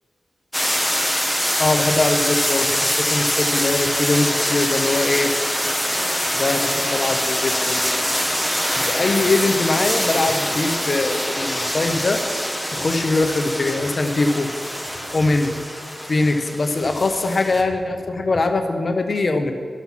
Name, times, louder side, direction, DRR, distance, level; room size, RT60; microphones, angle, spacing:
sound 1, 0.5-17.6, equal, ahead, 1.3 m, -24 dB
voice 1, 1.6-5.3 6.4-8.0 8.8-12.2 12.7-14.5 15.1-15.5 16.1-19.5, left 2 dB, 55° left, 6 dB, 1.0 m, -22 dB
11.5 x 7.3 x 5.8 m, 2.2 s
cardioid pair, 45°, 0 cm